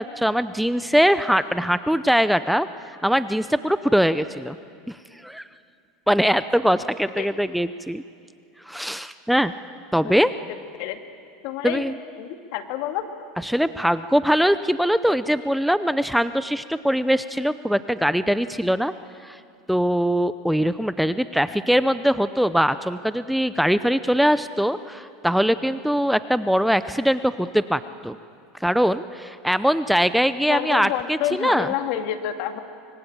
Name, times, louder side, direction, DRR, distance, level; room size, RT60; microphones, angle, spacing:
voice 1, 0.0-2.7 3.0-4.6 4.9-5.0 5.2-5.4 6.1-8.0 8.7-9.5 9.9-10.3 11.6-11.9 13.4-18.9 19.2-19.4 19.7-28.2 28.6-31.7, equal, ahead, 13 dB, 0.7 m, -22 dB
voice 2, 11.4-11.8 12.2-13.0 30.5-32.6, left 11 dB, 65° left, 7 dB, 2.1 m, -28 dB
25.0 x 23.0 x 8.7 m, 2.3 s
supercardioid pair, 110°, 0 cm